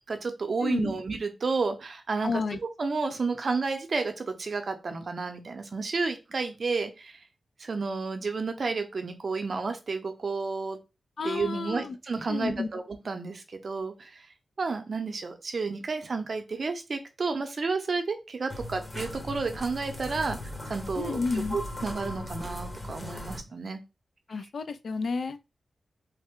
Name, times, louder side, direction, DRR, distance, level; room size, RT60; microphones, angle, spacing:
voice 1, 0.1-2.4 2.8-7.2 7.6-10.8 11.2-14.3 14.6-21.2 21.5-23.8, right 4 dB, 55° right, 0.6 m, -31 dB
voice 2, 0.6-0.9 2.2-2.6 11.2-12.0 12.3-12.7 21.0-21.6 24.3-25.4, left 4 dB, 65° left, 0.3 m, -31 dB
sound 1, 18.5-23.4, left 1 dB, 25° left, 0.9 m, -38 dB
3.3 x 2.1 x 3.6 m
wide cardioid pair, 85°, 0 cm